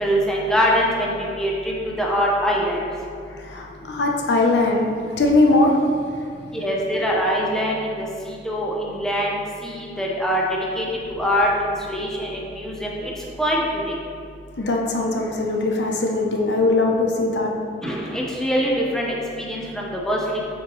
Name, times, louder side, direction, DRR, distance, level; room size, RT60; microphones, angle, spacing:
voice 1, 0.0-2.8 6.5-8.1 8.4-10.4 10.8-13.1 13.4-13.9 17.8-20.4, equal, 5° left, -4 dB, 0.8 m, -23 dB
voice 2, 3.3-5.8 14.6-17.5, left 2 dB, 80° left, 1 dB, 0.7 m, -20 dB
7.4 x 4.6 x 3.1 m, 2.4 s
head